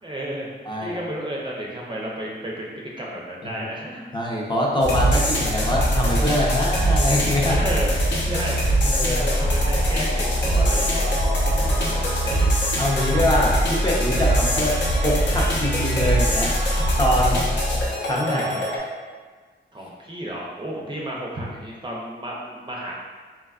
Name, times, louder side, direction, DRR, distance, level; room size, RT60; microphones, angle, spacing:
voice 1, 0.0-0.5 0.8-2.7 3.0-4.1 7.5-7.9 8.2-8.6 9.0-11.1 11.7-12.5 14.3-14.4 19.7-22.9, right 1 dB, 25° right, -4 dB, 0.4 m, -32 dB
voice 2, 0.7-1.0 3.5-3.6 4.1-7.6 8.8-9.2 11.5-11.8 12.8-16.5 17.0-17.6 18.0-18.6, left 1 dB, 25° left, -4 dB, 0.5 m, -24 dB
sound 1, 4.8-18.8, equal, 65° left, 0.6 m, -22 dB
3.3 x 2.2 x 2.3 m, 1.5 s
wide cardioid pair, 85°, 20 cm